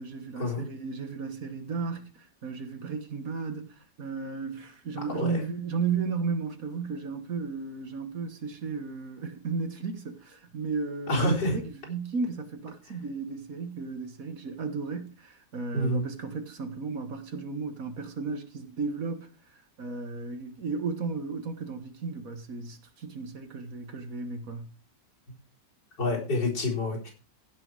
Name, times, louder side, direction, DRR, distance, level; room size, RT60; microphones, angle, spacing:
voice 1, 0.0-19.3 19.8-24.7, right 4 dB, 55° right, 1.8 m, -34 dB
voice 2, 11.1-11.6 15.7-16.1 26.0-27.1, left 1 dB, 85° left, 4.9 m, -27 dB
15.5 x 6.1 x 4.7 m
omnidirectional pair, 1.8 m